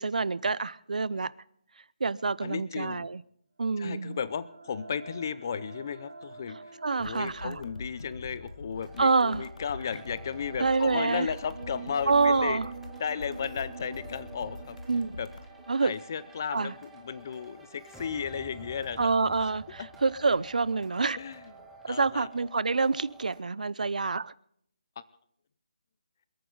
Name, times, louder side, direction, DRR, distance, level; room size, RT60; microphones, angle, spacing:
voice 1, 0.0-1.3 2.0-3.2 3.6-4.2 6.8-7.6 9.0-9.5 10.6-11.3 12.1-12.7 14.9-15.2 15.7-15.9 16.5-16.7 19.0-21.2 21.8-24.3, right 4 dB, 70° right, 20 dB, 0.6 m, -27 dB
voice 2, 2.4-3.1 3.8-6.6 7.0-12.6 13.0-14.8 15.2-15.3 15.8-19.5 19.8-19.9 21.2-21.5 21.9-22.3, left 7 dB, 25° left, 17 dB, 0.5 m, -34 dB
sound 1, 3.7-17.3, right 5 dB, 35° right, 5.1 m, -48 dB
sound 2, 7.0-15.5, left 2 dB, 65° left, 1.6 m, -45 dB
sound 3, 8.7-23.4, right 3 dB, ahead, 1.0 m, -51 dB
27.5 x 9.3 x 3.9 m, 0.67 s
hypercardioid pair, 175°, 4 cm